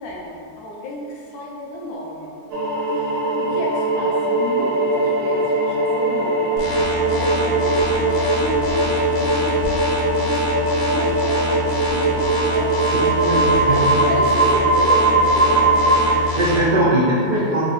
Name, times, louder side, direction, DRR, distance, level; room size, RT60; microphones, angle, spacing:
voice 1, 0.0-2.3 2.9-6.7 7.2-10.3 10.8-16.1, left 1 dB, 75° left, -2 dB, 1.2 m, -32 dB
sound 1, 2.5-16.1, right 2 dB, 65° right, 0.9 m, -20 dB
sound 2, 6.6-16.6, left 2 dB, 55° left, 0.9 m, -27 dB
voice 2, 13.2-14.0 16.1-17.6, right 1 dB, 80° right, -7 dB, 0.4 m, -20 dB
3.6 x 2.6 x 3.9 m, 2.5 s
omnidirectional pair, 1.7 m